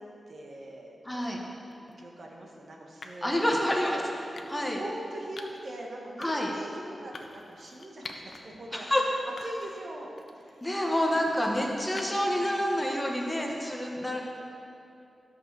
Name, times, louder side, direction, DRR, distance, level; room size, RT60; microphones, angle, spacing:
voice 1, 0.0-10.9 11.7-12.7 13.9-14.2, right 1 dB, 55° right, -1 dB, 1.4 m, -43 dB
voice 2, 1.1-1.4 3.2-4.0 4.5-4.8 6.2-6.5 8.7-9.0 10.6-14.2, left 1 dB, 10° left, -1 dB, 1.1 m, -28 dB
sound 1, 1.7-1.9 3.0-3.3 4.4-4.8 5.4-5.7 6.2-6.6 7.1-8.4 8.8-8.9 9.4-9.8 10.2-12.4, left 3 dB, 55° left, 0.8 m, -47 dB
12.0 x 6.0 x 6.8 m, 2.6 s
wide cardioid pair, 160°, 0 cm